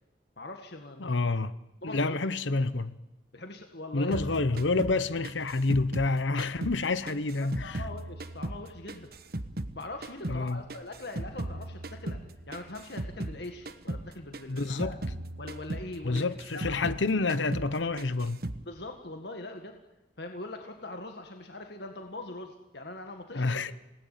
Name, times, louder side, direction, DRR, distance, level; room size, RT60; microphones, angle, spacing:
voice 1, 0.4-1.4 1.8-2.2 3.3-4.3 7.4-9.1 9.7-12.2 12.5-15.0 15.4-16.3 16.5-16.9 18.7-19.8 20.2-23.7, left 2 dB, 60° left, 1.9 m, -42 dB
voice 2, 1.0-1.5 1.8-2.9 3.9-7.8 10.3-10.6 14.5-14.9 16.0-18.4 23.3-23.7, left 3 dB, 80° left, 1.0 m, -28 dB
sound 1, 4.1-6.8 7.1-9.8 10.0-13.4 13.6-14.1 14.3-17.0 17.3-17.7 18.0-18.6, right 1 dB, 55° right, 1.2 m, -37 dB
27.5 x 18.5 x 9.3 m
head